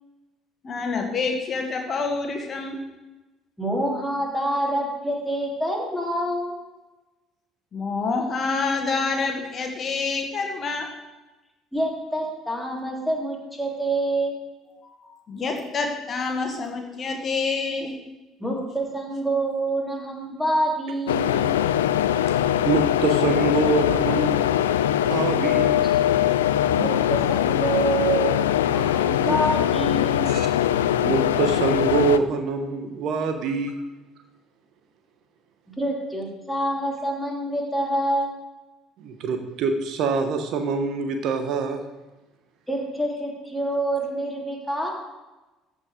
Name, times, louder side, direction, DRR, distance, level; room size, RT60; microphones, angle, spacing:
voice 1, 0.6-2.8 7.7-10.9 14.8-18.0, left 4 dB, 40° left, 3 dB, 1.7 m, -27 dB
voice 2, 3.6-6.5 11.7-14.4 18.4-21.5 26.7-30.3 35.7-38.4 42.7-44.9, right 1 dB, ahead, -2 dB, 3.1 m, -27 dB
sound 1, 21.1-32.2, left 11 dB, 75° left, 0.3 m, -22 dB
voice 3, 22.6-24.4 25.1-25.8 28.9-29.4 30.3-30.5 31.0-33.7 39.0-41.8, right 4 dB, 55° right, 7 dB, 0.9 m, -25 dB
14.0 x 5.1 x 5.1 m, 1.1 s
figure-of-eight pair, 55°, 0 cm